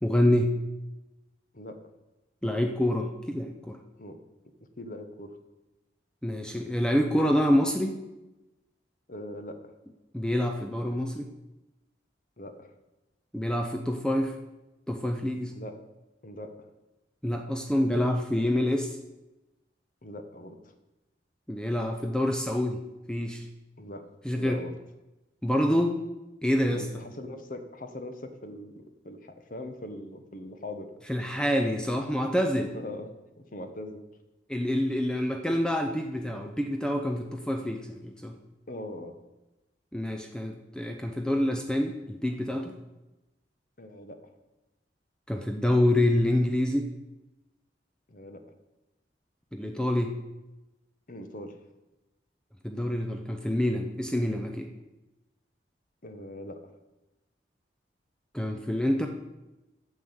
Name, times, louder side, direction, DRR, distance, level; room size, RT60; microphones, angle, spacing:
voice 1, 0.0-0.5 2.4-3.8 6.2-7.9 10.1-11.2 13.3-14.3 14.9-15.5 17.2-19.0 21.5-22.8 23.1-23.4 24.2-24.6 25.4-26.0 26.4-26.9 31.1-32.7 34.5-38.3 39.9-42.8 45.3-46.9 49.5-50.1 52.6-54.7 58.3-59.1, left 1 dB, 5° left, 4 dB, 0.6 m, -27 dB
voice 2, 4.8-5.4 9.1-9.7 12.4-12.7 15.5-15.8 16.2-16.5 20.0-20.6 23.8-24.7 26.7-30.9 32.7-34.0 38.7-39.2 43.8-44.3 48.1-48.4 51.1-51.6 56.0-56.7, left 1 dB, 50° left, 8 dB, 1.1 m, -41 dB
8.9 x 6.3 x 7.9 m, 1.0 s
head